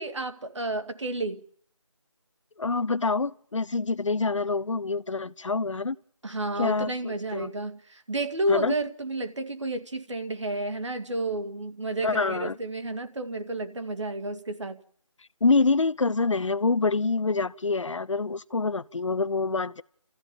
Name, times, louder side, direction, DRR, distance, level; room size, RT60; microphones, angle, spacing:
voice 1, 0.0-1.4 6.2-14.8, right 2 dB, 60° right, 2.2 m, -31 dB
voice 2, 2.6-6.0 6.6-7.5 8.5-8.7 12.0-12.6 15.4-19.8, left 3 dB, 65° left, 0.9 m, -26 dB
29.5 x 14.5 x 7.2 m
figure-of-eight pair, 170°, 17 cm